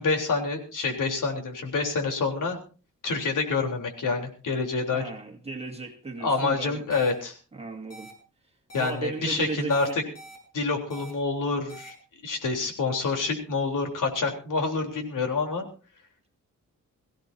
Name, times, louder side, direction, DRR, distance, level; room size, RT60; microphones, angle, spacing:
voice 1, 0.0-2.6 3.0-5.0 6.2-7.3 8.7-10.0 10.5-11.9 12.2-15.7, left 4 dB, 80° left, 3.7 m, -27 dB
voice 2, 4.9-6.8 7.5-8.1 8.8-9.8 10.0-10.1 10.9-11.1, right 4 dB, 20° right, 2.1 m, -36 dB
sound 1, 6.9-7.1 7.9-8.1 8.7-8.9 9.7-10.4 10.9-11.1 11.7-11.9, right 1 dB, 50° left, 6.1 m, -45 dB
23.0 x 16.0 x 2.7 m
wide cardioid pair, 180°, 31 cm